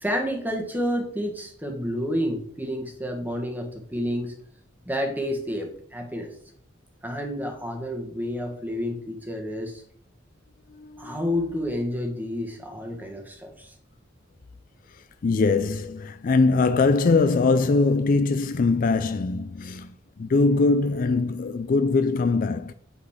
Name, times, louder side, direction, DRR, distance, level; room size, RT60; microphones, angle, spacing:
voice 1, 0.0-4.3 4.8-6.3 7.0-9.8 11.0-13.7, equal, 10° right, 1.4 m, -29 dB
voice 2, 10.7-11.6 14.9-22.7, left 3 dB, 45° left, 0.4 m, -22 dB
8.7 x 4.0 x 6.4 m
head